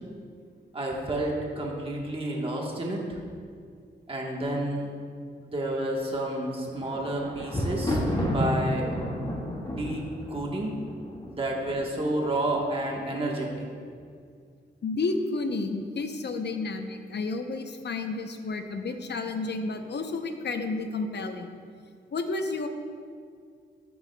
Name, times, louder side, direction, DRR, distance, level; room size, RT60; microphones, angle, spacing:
voice 1, 0.7-3.2 4.1-4.9 5.4-8.9 9.6-10.0 10.3-10.7 11.2-13.6, right 1 dB, 30° right, -2 dB, 1.3 m, -30 dB
Thunder, 6.5-11.6 12.4-12.9 13.1-13.2, equal, 20° left, 1.9 m, -30 dB
voice 2, 14.8-21.6 22.1-22.7, left 3 dB, 60° left, 6 dB, 0.7 m, -31 dB
12.5 x 8.7 x 2.3 m, 2.1 s
wide cardioid pair, 105°, 20 cm